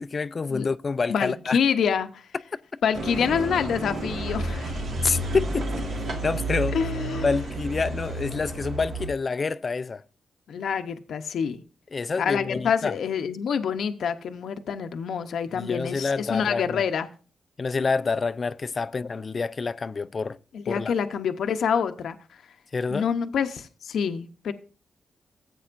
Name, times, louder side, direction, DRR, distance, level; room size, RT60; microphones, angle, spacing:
voice 1, 0.0-1.6 5.0-5.9 6.2-6.8 7.2-10.0 11.9-13.0 15.5-16.8 17.6-20.4 20.7-20.9 22.7-23.1, left 4 dB, 40° left, 0.4 m, -27 dB
voice 2, 1.1-2.3 2.8-4.8 6.7-7.2 10.5-11.6 12.2-17.1 20.5-22.2 22.9-24.5, left 7 dB, 80° left, 0.7 m, -27 dB
sound 1, 2.9-9.1, right 2 dB, 75° right, 2.5 m, -31 dB
14.5 x 8.3 x 2.5 m
cardioid pair, 90°, 0 cm